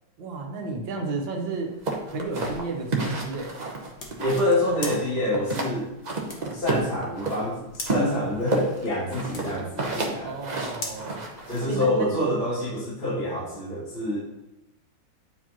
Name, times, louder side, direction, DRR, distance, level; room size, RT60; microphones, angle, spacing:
voice 1, 0.2-1.7 2.1-3.5 10.2-11.2 11.6-12.1, right 3 dB, 75° right, 2 dB, 1.7 m, -32 dB
sound 1, 1.7-12.1, left 2 dB, 40° left, 1.1 m, -44 dB
sound 2, 1.8-4.5 4.8-5.7 6.0-7.4 7.8-11.7, right 3 dB, 45° right, 0.5 m, -30 dB
voice 2, 4.2-5.9 6.5-10.4 11.5-14.2, left 1 dB, 90° left, -12 dB, 3.5 m, -26 dB
9.1 x 4.7 x 3.0 m, 0.91 s
omnidirectional pair, 2.1 m